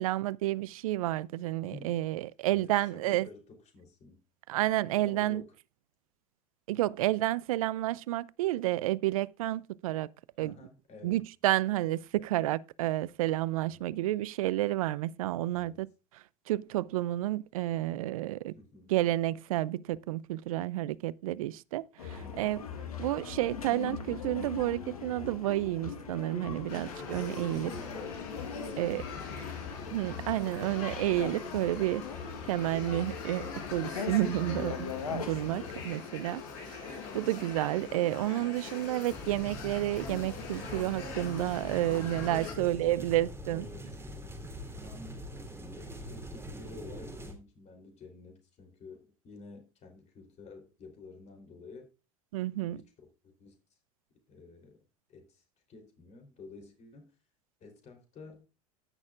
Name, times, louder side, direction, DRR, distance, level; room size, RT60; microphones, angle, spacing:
voice 1, 0.0-3.3 4.5-5.4 6.7-10.1 10.4-10.5 11.0-15.9 16.5-18.5 18.9-22.6 23.0-27.7 28.8-29.0 29.9-32.0 32.4-43.7 52.3-52.8, right 15 dB, 75° right, 0.4 m, -30 dB
voice 2, 1.7-2.0 2.5-4.2 5.0-5.5 10.4-11.2 13.6-14.0 15.5-15.9 18.5-19.0 22.2-22.7 27.5-28.2 28.5-29.5 30.4-30.8 35.8-36.2 41.8-44.1 44.7-51.9 52.4-53.6 54.3-54.8 55.1-57.1 57.6-58.5, left 3 dB, 40° left, 3.4 m, -51 dB
sound 1, 22.0-35.9, left 6 dB, 90° left, 1.3 m, -40 dB
sound 2, 26.7-42.5, left 5 dB, 65° left, 4.1 m, -43 dB
sound 3, 39.1-47.3, equal, 15° right, 3.2 m, -43 dB
18.5 x 6.3 x 2.4 m
hypercardioid pair, 80°, 18 cm